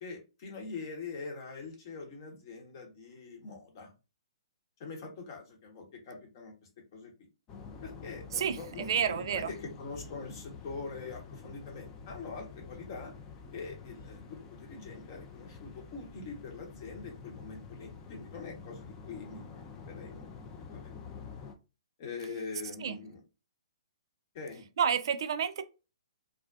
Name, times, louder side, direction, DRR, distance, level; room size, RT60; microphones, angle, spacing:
voice 1, 0.0-3.9 4.8-6.5 6.9-7.1 7.8-13.1 13.5-20.3 20.7-20.9 22.0-23.2 24.3-24.6, left 4 dB, 40° left, 0.9 m, -43 dB
sound 1, 7.5-21.5, left 5 dB, 25° left, 0.4 m, -48 dB
voice 2, 8.3-9.5 22.8-23.0 24.8-25.6, right 7 dB, 55° right, 0.3 m, -30 dB
2.4 x 2.1 x 2.5 m
figure-of-eight pair, 125°, 3 cm